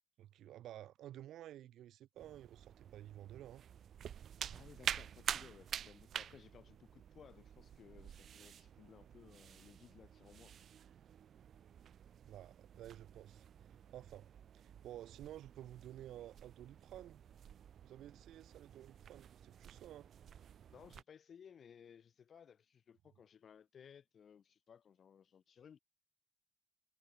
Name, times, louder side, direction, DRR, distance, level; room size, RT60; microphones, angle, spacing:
voice 1, 0.2-3.6 12.3-13.4 13.9-17.2 17.8-20.1, right 12 dB, 80° right, 1.7 m, -53 dB
sound 1, 2.2-21.0, right 9 dB, 60° right, 3.0 m, -49 dB
voice 2, 4.5-10.6 20.7-25.8, left 7 dB, 55° left, 7.5 m, -60 dB
cardioid pair, 90°, 0 cm